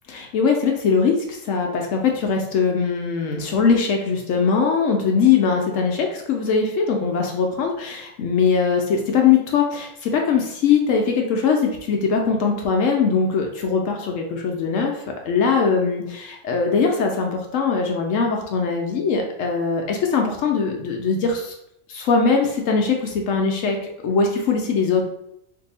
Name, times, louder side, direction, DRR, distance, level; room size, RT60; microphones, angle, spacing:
voice 1, 0.2-21.5 21.9-25.0, left 5 dB, 75° left, 2 dB, 0.9 m, -21 dB
2.7 x 2.6 x 4.0 m, 0.79 s
omnidirectional pair, 1.4 m